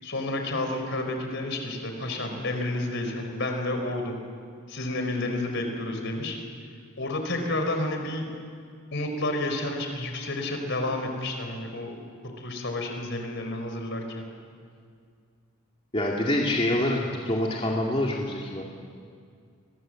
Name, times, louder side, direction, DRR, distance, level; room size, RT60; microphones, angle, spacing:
voice 1, 0.0-4.2 4.7-6.4 7.0-8.3 8.9-12.0 12.4-14.3, left 2 dB, 60° left, 4 dB, 4.5 m, -30 dB
voice 2, 15.9-18.6, left 1 dB, 25° left, -2 dB, 2.4 m, -26 dB
29.5 x 23.0 x 7.7 m, 2.2 s
head